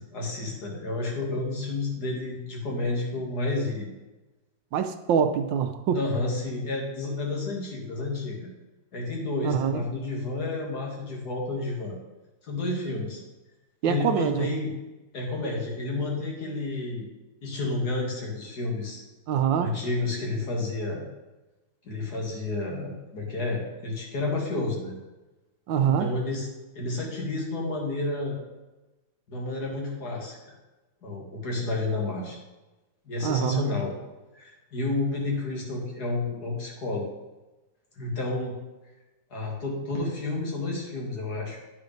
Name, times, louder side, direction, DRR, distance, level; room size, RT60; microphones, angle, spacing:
voice 1, 0.0-3.9 5.9-8.5 8.9-12.0 12.4-13.2 13.8-14.7 15.1-17.1 17.4-19.0 19.6-21.0 21.8-24.9 25.8-26.5 26.8-28.4 29.3-30.5 31.0-32.4 33.1-34.0 34.3-37.1 38.0-38.5 39.3-41.6, left 2 dB, 60° left, -1 dB, 2.5 m, -30 dB
voice 2, 4.7-6.0 9.4-9.8 13.8-14.5 19.3-19.7 25.7-26.1 33.2-33.7, right 8 dB, 80° right, 8 dB, 1.4 m, -24 dB
9.7 x 6.0 x 5.2 m, 1.1 s
omnidirectional pair, 2.0 m